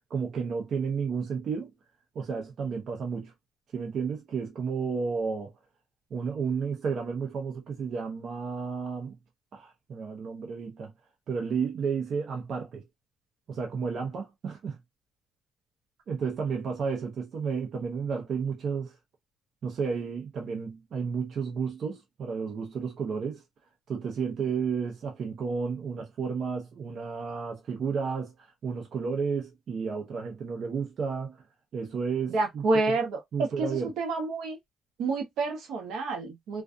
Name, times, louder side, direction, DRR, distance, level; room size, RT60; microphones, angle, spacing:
voice 1, 0.1-1.8 2.1-3.3 3.7-5.5 6.1-9.1 9.5-10.9 11.3-12.9 13.5-14.8 16.1-19.0 19.6-23.4 23.9-31.4 31.7-33.0 33.3-33.9, right 5 dB, 60° right, 0.8 m, -32 dB
voice 2, 32.3-33.2 33.6-34.6 35.0-36.6, right 3 dB, 85° right, 1.0 m, -28 dB
2.5 x 2.4 x 2.3 m
cardioid pair, 90°, 0 cm